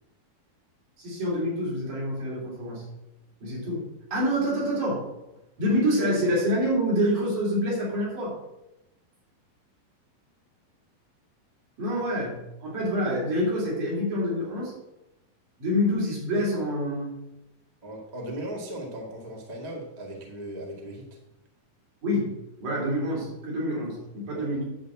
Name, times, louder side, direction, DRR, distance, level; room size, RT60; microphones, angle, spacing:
voice 1, 1.0-2.8 3.4-3.8 4.1-5.0 5.6-8.4 11.8-14.7 15.6-17.1 22.0-24.6, equal, 60° right, -5 dB, 4.9 m, -27 dB
voice 2, 17.8-21.1 24.3-24.5, right 1 dB, 20° right, -2 dB, 1.0 m, -37 dB
10.5 x 4.3 x 7.7 m, 0.92 s
omnidirectional pair, 4.2 m